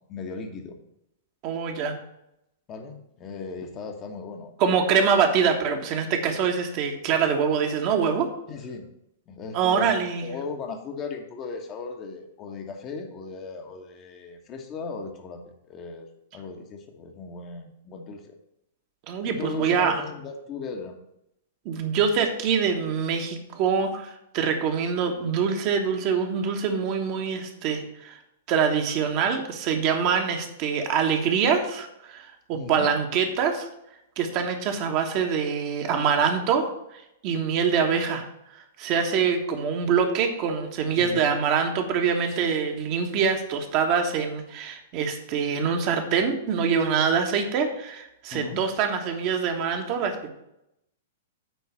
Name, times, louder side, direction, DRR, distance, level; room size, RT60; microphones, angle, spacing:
voice 1, 0.1-0.8 2.7-4.5 8.5-8.9 9.3-9.9 10.2-15.4 15.7-16.1 16.3-18.3 19.3-21.0 32.5-32.9 41.0-41.2 48.3-48.6, left 4 dB, 30° left, 3 dB, 1.2 m, -37 dB
voice 2, 1.4-1.9 4.6-8.3 9.5-10.3 19.1-20.0 21.6-28.2 28.5-33.7 34.2-50.3, right 6 dB, 40° right, 3 dB, 1.3 m, -25 dB
9.1 x 3.9 x 7.1 m, 0.81 s
figure-of-eight pair, 105°, 0 cm